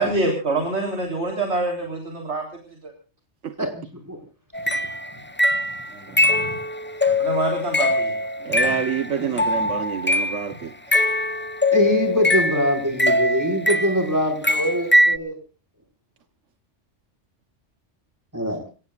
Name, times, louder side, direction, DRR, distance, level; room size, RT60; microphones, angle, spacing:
voice 1, 0.0-2.5 2.8-2.9 5.9-6.2 7.2-8.1 8.4-8.7 9.4-9.6, right 2 dB, 70° right, 3 dB, 4.0 m, -26 dB
voice 2, 3.6-4.2 6.1-6.6 7.1-7.2 8.6-8.7 11.7-15.4 18.3-18.6, equal, 15° right, 3 dB, 5.5 m, -23 dB
sound 1, 4.5-10.5 10.9-14.1 14.4-15.2, left 1 dB, 10° left, 0.7 m, -22 dB
voice 3, 8.4-10.7, right 7 dB, 90° right, 9 dB, 1.4 m, -27 dB
28.5 x 17.5 x 2.4 m, 0.36 s
omnidirectional pair, 1.2 m